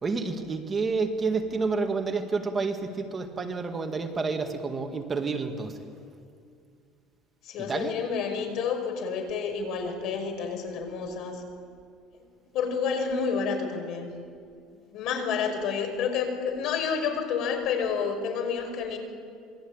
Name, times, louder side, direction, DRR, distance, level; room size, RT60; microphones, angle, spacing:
voice 1, 0.0-5.8 7.6-8.0, right 4 dB, 20° right, 4 dB, 1.9 m, -29 dB
voice 2, 7.4-11.4 12.5-14.1 14.9-19.0, left 6 dB, 55° left, 5 dB, 5.3 m, -29 dB
27.0 x 23.0 x 8.8 m, 2.3 s
cardioid pair, 155°, 0 cm